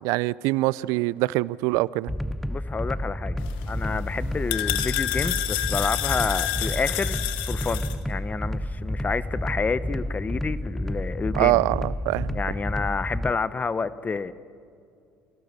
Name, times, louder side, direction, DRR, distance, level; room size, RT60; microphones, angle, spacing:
voice 1, 0.0-2.1 11.3-12.4, right 20 dB, 75° right, 0.5 m, -24 dB
sound 1, 2.1-13.3, equal, ahead, 0.6 m, -30 dB
voice 2, 2.5-3.4 3.7-11.6 12.3-14.3, left 4 dB, 30° left, 1.0 m, -29 dB
sound 2, 3.4-7.9, left 14 dB, 80° left, 1.3 m, -29 dB
28.0 x 18.0 x 6.7 m
hypercardioid pair, 70°, 6 cm